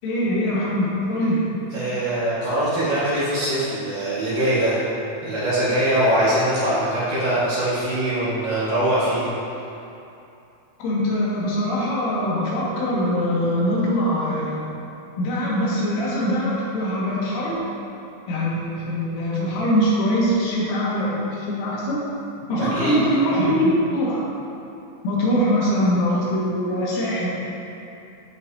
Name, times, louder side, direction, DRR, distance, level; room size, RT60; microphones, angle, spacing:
voice 1, 0.0-1.4 10.8-14.6 15.2-17.6 18.3-22.0 22.5-24.2 25.0-27.3, equal, 75° left, -7 dB, 4.4 m, -22 dB
voice 2, 1.7-4.8 5.2-9.3 22.7-22.9, right 1 dB, 55° right, -10 dB, 2.8 m, -22 dB
14.0 x 9.4 x 2.8 m, 2.7 s
omnidirectional pair, 5.8 m